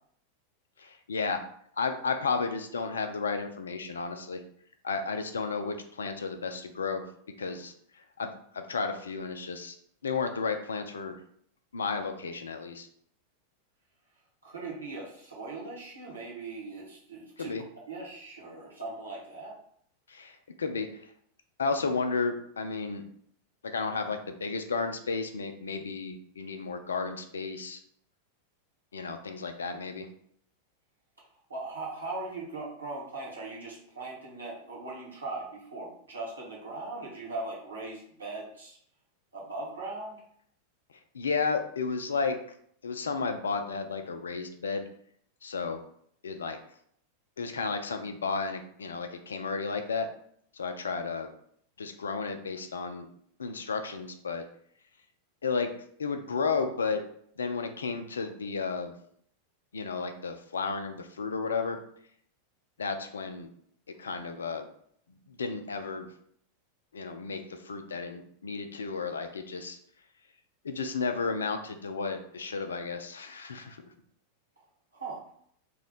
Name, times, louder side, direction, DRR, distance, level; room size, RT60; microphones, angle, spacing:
voice 1, 0.8-1.4 1.8-4.4 4.8-7.0 7.4-7.7 8.2-9.8 10.0-11.1 11.7-12.9 17.4-17.6 20.1-20.9 21.6-23.0 23.6-27.8 28.9-30.1 41.1-42.4 42.8-44.9 45.4-45.8 46.2-46.6 47.4-50.1 50.5-51.3 51.8-53.1 53.4-54.4 55.4-55.7 56.0-57.0 57.4-58.9 59.7-61.8 62.8-63.5 64.0-64.7 65.3-66.1 66.9-69.8 70.6-73.8, left 4 dB, 70° left, 7 dB, 0.4 m, -33 dB
voice 2, 14.4-17.6 17.9-19.6 31.5-38.8 39.3-40.2 74.9-75.2, right 3 dB, 75° right, -4 dB, 1.0 m, -39 dB
2.7 x 2.1 x 4.0 m, 0.66 s
figure-of-eight pair, 90°, 0 cm